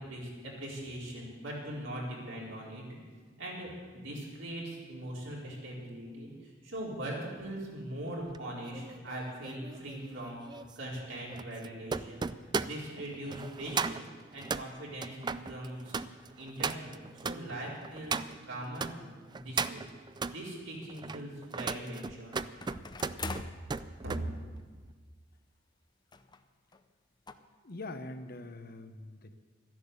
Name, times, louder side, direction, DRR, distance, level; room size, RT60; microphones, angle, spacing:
voice 1, 0.1-2.8 3.4-14.0 14.3-19.9 20.3-22.3 23.2-23.3 24.0-24.2, right 1 dB, 80° right, -4 dB, 4.5 m, -41 dB
sound 1, 8.3-18.9 19.3-20.4 20.9-24.3 24.6-24.9, right 4 dB, 25° right, 0.4 m, -37 dB
sound 2, 22.6-23.6 24.6-24.7 24.9-25.0 26.1-26.4 26.7-26.8 27.3-27.4, left 4 dB, 25° left, 0.6 m, -42 dB
voice 2, 27.6-29.4, left 2 dB, 50° left, 8 dB, 1.0 m, -43 dB
13.0 x 10.5 x 8.2 m, 1.5 s
head